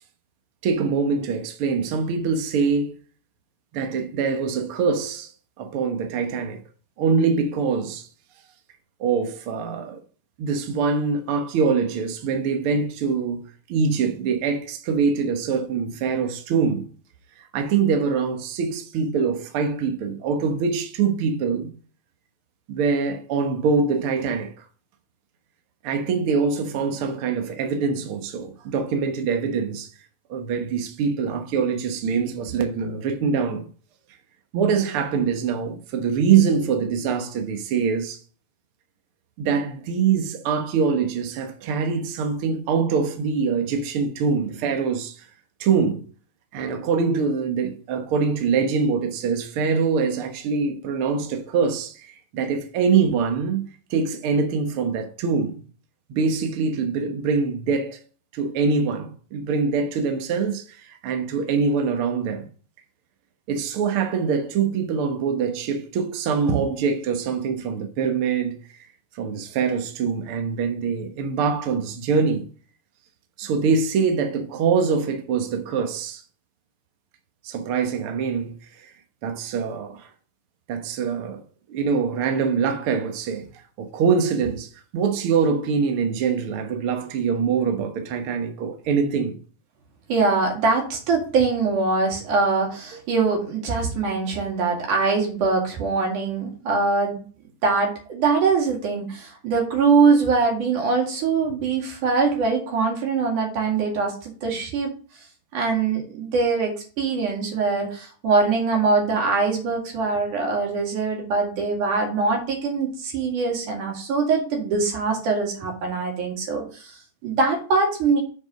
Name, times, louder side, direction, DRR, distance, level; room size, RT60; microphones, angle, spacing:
voice 1, 0.6-2.9 3.7-5.3 5.6-6.6 7.0-8.1 9.0-10.0 10.4-13.4 13.7-16.9 17.4-21.7 22.7-24.5 25.8-29.9 30.3-33.7 34.5-38.2 39.4-45.3 45.6-46.0 46.5-55.6 56.1-58.0 58.3-62.5 63.5-68.6 69.1-72.4 73.4-76.2 77.4-78.9 79.2-80.1 80.7-81.4 81.7-83.5 83.8-89.4, right 5 dB, 80° right, 1.2 m, -24 dB
voice 2, 90.1-97.2 97.6-104.9 105.5-118.2, right 4 dB, 60° right, 3.5 m, -23 dB
7.9 x 4.7 x 5.2 m
omnidirectional pair, 4.3 m